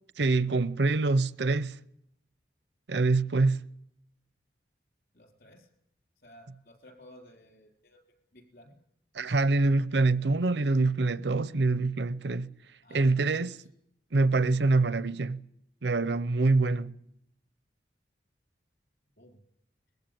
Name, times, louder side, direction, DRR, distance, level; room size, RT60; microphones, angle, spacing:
voice 1, 0.2-1.8 2.9-3.7 9.1-12.5 12.9-13.5 14.1-15.5 15.8-17.0, right 3 dB, 80° right, 0.7 m, -25 dB
voice 2, 5.1-5.7 6.2-8.0 8.3-8.7 12.8-13.7 19.2-19.4, equal, 60° left, 4.1 m, -55 dB
20.5 x 15.0 x 9.1 m
head